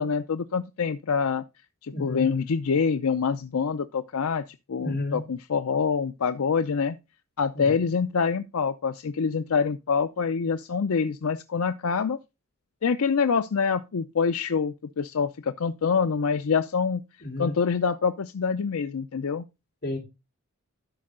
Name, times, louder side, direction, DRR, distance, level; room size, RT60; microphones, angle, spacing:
voice 1, 0.0-1.4 1.8-7.0 7.4-12.2 12.8-17.0 17.4-19.4, left 5 dB, 75° left, 0.5 m, -26 dB
voice 2, 1.9-2.3 4.8-5.2 7.5-7.7 17.2-17.5 19.8-20.0, left 2 dB, 45° left, 4.1 m, -31 dB
12.5 x 5.3 x 3.7 m
head